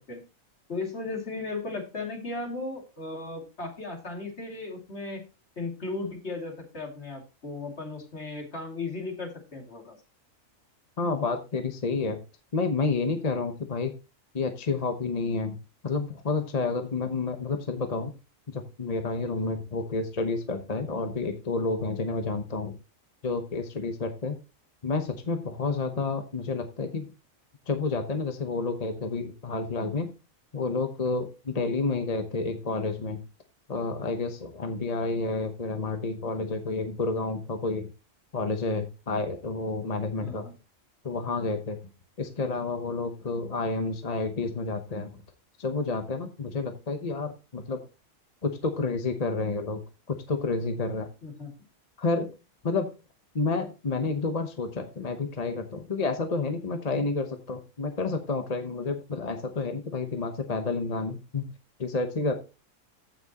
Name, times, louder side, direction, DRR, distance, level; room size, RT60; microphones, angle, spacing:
voice 1, 0.7-5.2 5.6-10.0 40.2-40.5 51.2-51.5, left 3 dB, 55° left, 1 dB, 2.8 m, -36 dB
voice 2, 11.0-12.2 12.5-13.9 14.3-15.6 15.8-18.1 18.5-22.7 23.2-24.4 24.8-27.1 27.7-30.1 30.5-33.2 33.7-37.9 38.3-40.4 41.0-41.8 42.2-45.2 45.6-47.8 48.4-49.8 50.1-51.1 52.0-52.3 52.6-52.9 53.3-61.5 61.8-62.3, left 3 dB, 35° left, 6 dB, 0.9 m, -30 dB
14.5 x 6.1 x 2.9 m, 0.29 s
omnidirectional pair, 1.4 m